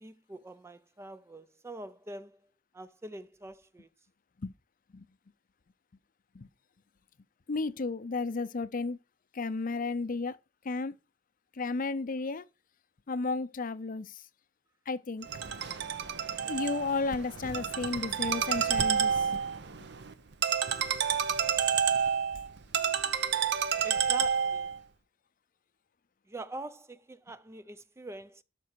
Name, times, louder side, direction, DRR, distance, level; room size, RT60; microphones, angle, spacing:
voice 1, 0.0-2.4 2.7-3.9 23.8-24.6 26.3-28.4, right 1 dB, 15° right, 0.4 m, -44 dB
voice 2, 7.5-9.0 9.3-10.4 10.6-10.9 11.5-12.5 13.1-14.2 14.9-15.3 16.5-19.4, left 3 dB, 45° left, 0.5 m, -33 dB
Ringtone, 15.2-24.8, right 7 dB, 60° right, 0.8 m, -29 dB
12.0 x 5.4 x 4.6 m
head